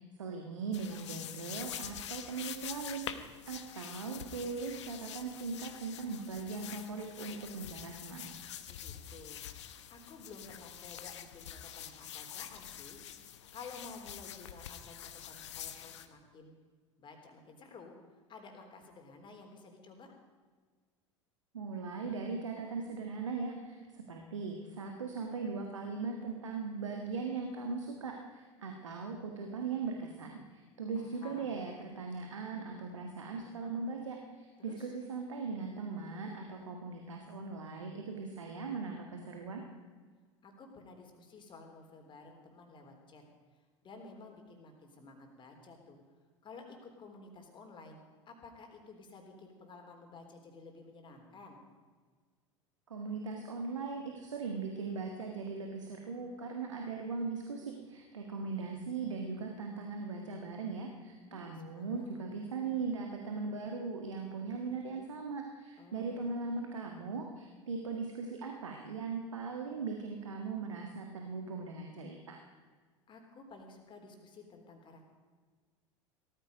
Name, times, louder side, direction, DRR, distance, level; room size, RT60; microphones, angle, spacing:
voice 1, 0.0-8.3 21.5-39.6 52.9-72.4, right 4 dB, 75° right, 2 dB, 1.7 m, -39 dB
sound 1, 0.7-16.1, left 10 dB, 65° left, 1.1 m, -46 dB
voice 2, 8.7-9.4 9.9-13.0 13.5-16.5 17.0-17.9 18.3-20.1 31.0-31.5 34.6-34.9 40.4-43.2 43.8-46.0 46.4-48.0 48.3-51.6 61.3-62.2 65.8-66.3 73.1-75.0, left 3 dB, 30° left, 3 dB, 3.7 m, -52 dB
18.0 x 13.5 x 5.2 m, 1.5 s
figure-of-eight pair, 75°, 16 cm